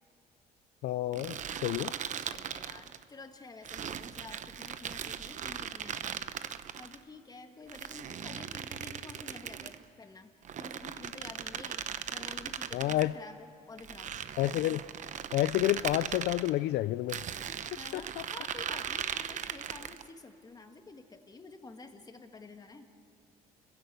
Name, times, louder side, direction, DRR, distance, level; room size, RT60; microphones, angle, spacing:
voice 1, 0.8-1.9 12.7-13.1 14.4-14.8 15.3-17.2 17.9-18.2, left 15 dB, 75° left, 15 dB, 0.4 m, -29 dB
sound 1, 1.1-3.0 3.6-7.0 7.7-9.8 10.4-13.1 13.8-16.5 17.1-20.1, right 8 dB, 45° right, 0.9 m, -39 dB
voice 2, 2.3-6.3 6.8-10.3 10.6-14.3 17.7-22.9, left 3 dB, 20° left, 5 dB, 2.0 m, -50 dB
30.0 x 15.5 x 8.2 m, 2.7 s
cardioid pair, 110°, 17 cm